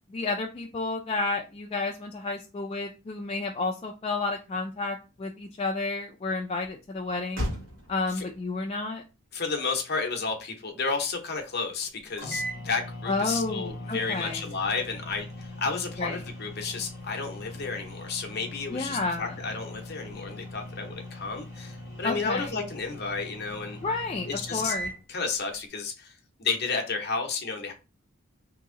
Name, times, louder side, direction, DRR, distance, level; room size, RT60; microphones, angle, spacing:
voice 1, 0.1-7.5 7.9-9.0 13.1-14.4 16.0-16.2 18.7-19.4 22.0-22.5 23.8-24.9, left 3 dB, 30° left, 0 dB, 0.3 m, -31 dB
Motor vehicle (road), 4.4-11.9, equal, 70° right, 1.2 m, -42 dB
voice 2, 9.3-23.8 24.2-24.7 25.1-26.1 26.4-27.7, left 4 dB, 50° left, 3 dB, 0.8 m, -32 dB
sound 1, 11.8-11.9 12.2-25.0, left 1 dB, 15° right, 1.6 m, -40 dB
2.9 x 2.6 x 3.7 m, 0.29 s
head